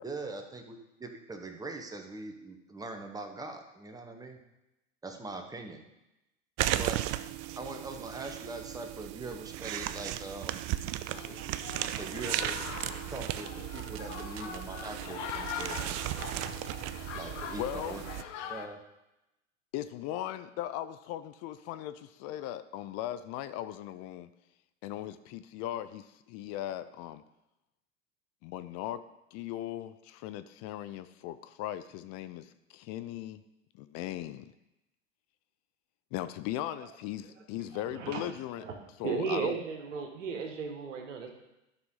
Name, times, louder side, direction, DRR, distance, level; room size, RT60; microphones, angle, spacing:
voice 1, 0.0-4.4 5.0-5.8 6.8-7.0 7.6-10.6 12.0-12.6 13.1-16.2 17.1-18.0 18.5-18.8, right 2 dB, 10° right, 4 dB, 1.2 m, -42 dB
sound 1, 6.6-18.2, right 14 dB, 45° right, 0.5 m, -36 dB
sound 2, 11.1-18.7, left 8 dB, 65° left, 0.9 m, -42 dB
voice 2, 17.6-18.0 19.7-24.3 24.8-27.2 28.4-29.0 29.3-33.4 33.7-34.5 36.1-38.6 39.0-39.6, left 13 dB, 45° left, 13 dB, 0.5 m, -38 dB
voice 3, 37.7-38.2 38.6-38.8 39.0-41.3, right 5 dB, 75° right, 3 dB, 1.7 m, -35 dB
12.0 x 5.8 x 3.8 m, 0.92 s
hypercardioid pair, 85°, 37 cm